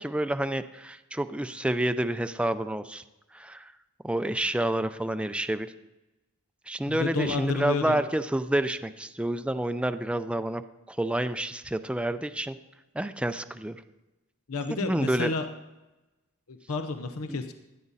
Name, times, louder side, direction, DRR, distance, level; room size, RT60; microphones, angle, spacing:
voice 1, 0.0-3.0 3.3-3.7 4.0-5.7 6.7-10.6 10.9-12.6 12.9-13.8 14.8-15.3 17.3-17.4, right 1 dB, 5° right, 10 dB, 0.4 m, -29 dB
voice 2, 6.9-8.0 14.5-15.5 16.5-17.5, left 3 dB, 85° left, 7 dB, 0.9 m, -30 dB
17.0 x 11.5 x 4.1 m, 1.0 s
head